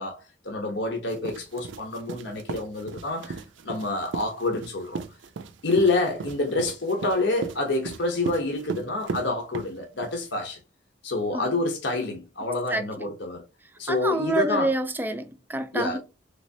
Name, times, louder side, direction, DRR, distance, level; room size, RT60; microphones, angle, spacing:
voice 1, 0.0-5.0 5.6-10.6 11.0-13.4 13.8-14.7 15.7-16.0, left 2 dB, 70° left, 0.8 m, -27 dB
sound 1, 1.1-10.2, right 4 dB, 85° right, 0.4 m, -36 dB
voice 2, 12.7-13.1 13.9-16.0, right 2 dB, 10° right, 0.4 m, -28 dB
3.4 x 3.1 x 2.6 m
head